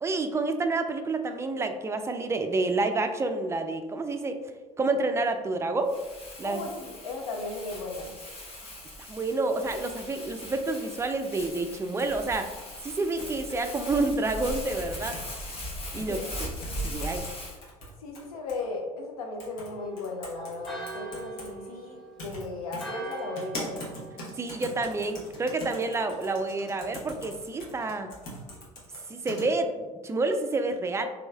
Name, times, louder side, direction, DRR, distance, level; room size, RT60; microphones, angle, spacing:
voice 1, 0.0-4.4 4.8-6.0 6.4-6.6 9.1-12.5 12.8-15.2 15.9-16.5 16.8-17.2 24.4-28.1 29.1-31.1, right 3 dB, 15° right, 7 dB, 0.3 m, -29 dB
Crumpling crinkling, 5.9-17.6, equal, 30° left, 1.0 m, -39 dB
voice 2, 6.4-8.1 16.1-16.3 16.7-17.0 18.0-23.8, left 3 dB, 75° left, 1 dB, 0.5 m, -36 dB
sound 1, 12.0-14.5 14.9-15.6 16.0-16.1 16.6-17.3 17.6-18.6 19.4-19.7 20.0-21.5 22.2-22.4 22.7-29.4, left 1 dB, 60° left, 1.0 m, -42 dB
Church bell, 19.7-25.4, right 3 dB, ahead, 0.9 m, -43 dB
3.4 x 3.0 x 2.3 m, 1.2 s
figure-of-eight pair, 60°, 19 cm